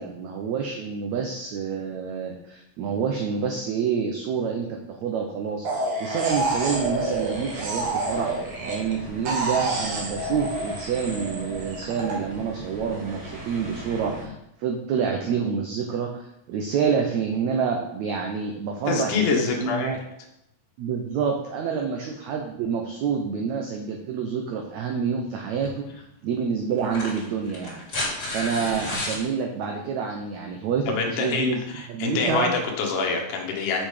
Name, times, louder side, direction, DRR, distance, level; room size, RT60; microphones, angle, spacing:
voice 1, 0.0-5.6 6.0-8.3 8.7-14.3 14.6-20.0 20.8-25.8 26.2-27.8 28.3-32.5, right 6 dB, 80° right, 2 dB, 1.6 m, -27 dB
sound 1, 5.6-8.9 9.3-12.1, right 2 dB, 50° right, 1.8 m, -28 dB
sound 2, 6.3-14.3, right 1 dB, 25° right, 3.0 m, -40 dB
voice 2, 18.9-20.0 30.9-33.8, left 4 dB, 65° left, 1 dB, 2.5 m, -26 dB
sound 3, 25.6-25.8 26.8-29.2 30.7-30.8, left 2 dB, 30° left, 2.5 m, -31 dB
6.5 x 6.1 x 5.0 m, 0.82 s
omnidirectional pair, 4.2 m